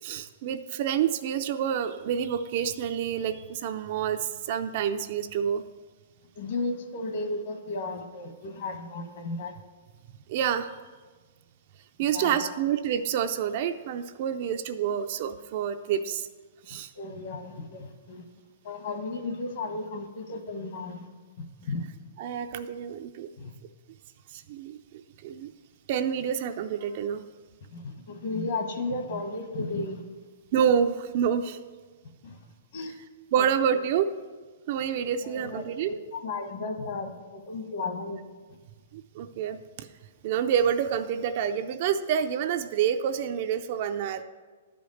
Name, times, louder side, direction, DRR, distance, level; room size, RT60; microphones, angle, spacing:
voice 1, 0.0-5.6 10.3-10.7 12.0-16.3 16.7-16.9 22.2-23.3 24.3-25.5 25.9-27.2 30.5-31.6 33.3-34.1 34.7-35.9 38.9-39.9 40.2-44.2, right 8 dB, 35° right, 8 dB, 0.4 m, -28 dB
voice 2, 6.3-9.5 12.1-12.5 16.7-18.2 18.6-21.1 21.7-21.8 23.4-23.6 27.7-30.0 32.2-32.4 32.7-32.9 33.4-33.5 35.2-38.2, left 3 dB, 45° left, 5 dB, 1.2 m, -34 dB
11.0 x 5.1 x 6.3 m, 1.4 s
hypercardioid pair, 175°, 0 cm